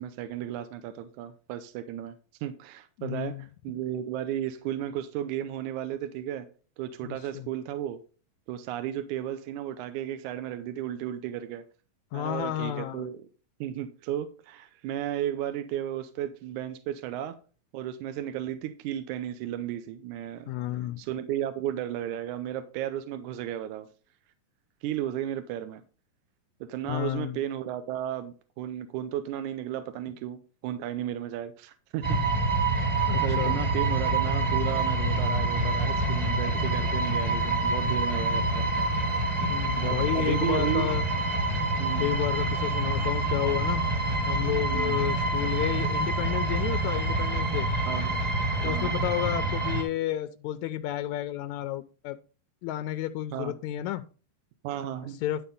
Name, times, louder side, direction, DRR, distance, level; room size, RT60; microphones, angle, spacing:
voice 1, 0.0-2.1 2.4-6.5 6.8-8.0 8.5-11.6 12.1-13.2 13.6-17.4 17.7-20.5 21.0-23.9 24.8-25.8 26.6-32.2 32.8-38.7 39.8-40.9 41.8-42.1 44.7-45.0 47.9-48.2 48.6-48.9 53.3-53.5 54.6-55.2, right 11 dB, 75° right, 9 dB, 2.0 m, -34 dB
voice 2, 3.0-3.4 7.0-7.5 12.1-13.1 20.5-21.0 26.9-27.4 33.1-33.6 39.4-41.0 42.0-43.8 44.3-47.7 48.6-52.2 52.6-54.0 55.2-55.4, left 13 dB, 85° left, 10 dB, 1.7 m, -31 dB
sound 1, 32.0-49.8, right 2 dB, 15° right, 1.2 m, -27 dB
11.5 x 4.2 x 5.3 m, 0.37 s
omnidirectional pair, 3.8 m